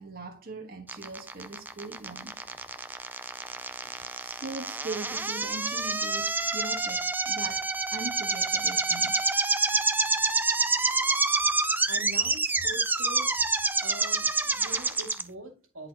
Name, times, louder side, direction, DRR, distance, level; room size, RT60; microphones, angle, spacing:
voice 1, 0.0-2.4 4.2-9.2, right 2 dB, 45° right, 1.3 m, -40 dB
sound 1, 0.9-15.2, right 3 dB, 10° right, 0.3 m, -27 dB
voice 2, 11.9-13.3 13.8-15.9, right 2 dB, 80° right, 2.0 m, -43 dB
10.5 x 4.2 x 2.8 m
head